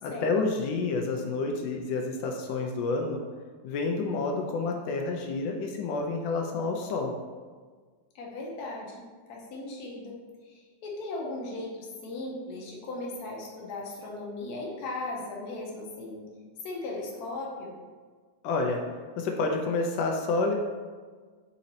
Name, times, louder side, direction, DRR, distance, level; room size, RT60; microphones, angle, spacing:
voice 1, 0.0-3.2 3.6-7.1 18.4-18.8 19.2-20.5, left 3 dB, 90° left, 2 dB, 1.3 m, -29 dB
voice 2, 8.1-9.0 9.3-10.2 10.4-16.2 16.6-17.7, left 2 dB, 65° left, -2 dB, 1.3 m, -37 dB
4.1 x 4.0 x 2.7 m, 1.5 s
omnidirectional pair, 2.0 m